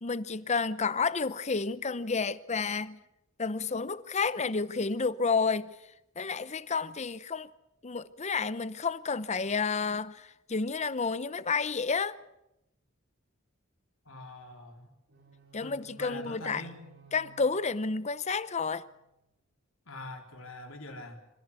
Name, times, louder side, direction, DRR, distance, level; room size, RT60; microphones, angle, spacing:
voice 1, 0.0-3.0 3.4-5.8 6.2-7.5 7.8-12.2 15.5-16.6 17.1-18.8, left 4 dB, 35° left, 0.7 m, -30 dB
voice 2, 14.1-14.9 15.6-16.8 19.9-21.2, left 2 dB, 70° left, 3.9 m, -44 dB
sound 1, 15.1-19.1, right 6 dB, 65° right, 4.6 m, -58 dB
26.0 x 15.5 x 8.3 m
head